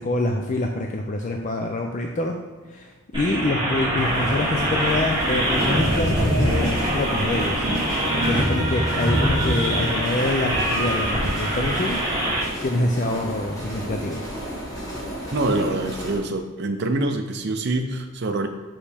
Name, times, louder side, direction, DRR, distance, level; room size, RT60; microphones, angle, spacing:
voice 1, 0.0-2.4 2.7-12.0 12.3-14.3, left 2 dB, 35° left, 2 dB, 0.4 m, -26 dB
sound 1, 3.1-12.4, right 1 dB, 20° right, 1.5 m, -23 dB
sound 2, 4.0-16.2, equal, 15° left, 1.3 m, -33 dB
voice 2, 15.3-18.5, right 2 dB, 50° right, 6 dB, 0.5 m, -25 dB
5.6 x 5.0 x 3.4 m, 1.3 s
head